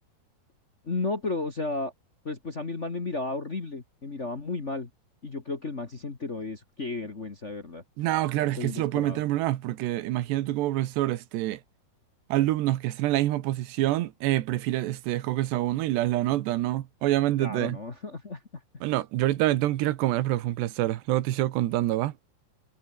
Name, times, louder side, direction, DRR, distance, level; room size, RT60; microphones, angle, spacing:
voice 1, 0.8-1.9 2.2-4.9 5.2-7.8 8.6-9.2 17.4-18.4, left 3 dB, 65° left, 0.7 m, -33 dB
voice 2, 8.0-11.6 12.3-17.8 18.8-22.1, right 15 dB, 80° right, 3.4 m, -26 dB
omnidirectional pair, 4.8 m